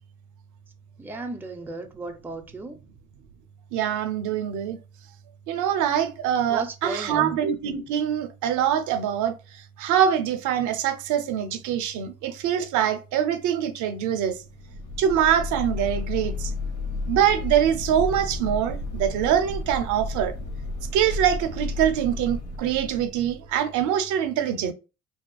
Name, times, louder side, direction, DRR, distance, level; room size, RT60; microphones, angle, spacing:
voice 1, 1.0-2.8 6.5-7.3, right 2 dB, 5° right, 0.5 m, -35 dB
voice 2, 3.7-4.8 5.5-9.3 9.8-14.4 15.0-16.5 17.1-20.3 20.9-24.7, right 9 dB, 60° right, 0.6 m, -24 dB
sound 1, 14.4-23.8, left 2 dB, 85° left, 0.9 m, -32 dB
2.7 x 2.4 x 2.3 m
hypercardioid pair, 65°, 34 cm